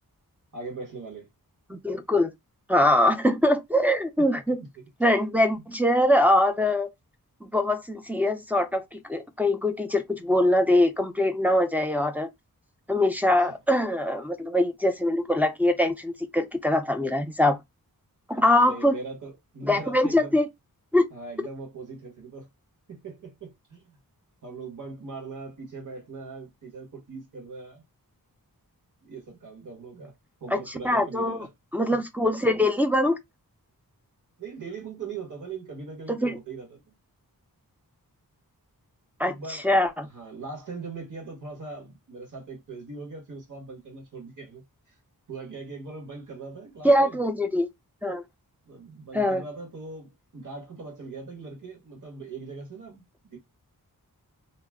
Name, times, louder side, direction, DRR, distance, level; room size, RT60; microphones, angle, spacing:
voice 1, 0.5-1.3 4.2-4.3 13.5-13.6 18.3-20.4 21.1-22.5 22.9-23.9 24.4-27.8 29.0-30.1 30.4-31.5 31.9-32.0 34.4-36.8 39.2-39.7 40.0-44.6 45.3-47.2 48.6-53.4, right 4 dB, 55° right, 1.5 m, -40 dB
voice 2, 1.7-2.3 2.7-4.6 5.0-6.9 7.4-12.3 12.9-17.6 18.3-19.0 19.7-20.5 20.9-21.1 30.5-31.5 31.7-33.2 36.1-36.4 39.2-40.1 46.8-47.7 48.0-48.2 49.1-49.4, left 1 dB, 5° right, 0.5 m, -23 dB
2.9 x 2.1 x 3.5 m
wide cardioid pair, 95°, 36 cm